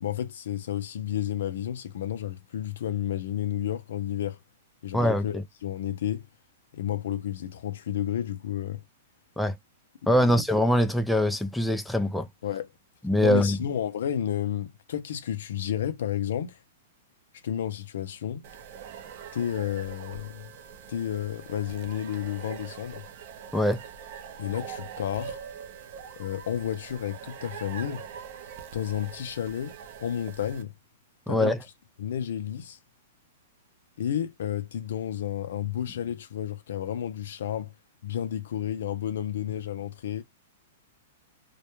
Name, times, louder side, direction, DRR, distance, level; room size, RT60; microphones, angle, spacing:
voice 1, 0.0-4.4 4.8-6.2 6.7-8.8 10.2-10.4 12.4-12.7 13.2-16.6 17.4-18.4 19.3-20.5 20.9-23.0 24.4-25.4 26.2-28.0 28.7-29.8 30.0-30.7 31.3-31.5 32.0-32.8 34.0-37.7 38.0-40.2, left 10 dB, 75° left, 0.4 m, -31 dB
voice 2, 4.9-5.2 9.4-9.6 10.1-12.3 13.0-13.6 23.5-23.8 31.3-31.6, left 1 dB, ahead, 0.3 m, -23 dB
sound 1, 18.4-30.6, right 7 dB, 50° right, 0.5 m, -43 dB
2.2 x 2.1 x 2.9 m
hypercardioid pair, 145°, 0 cm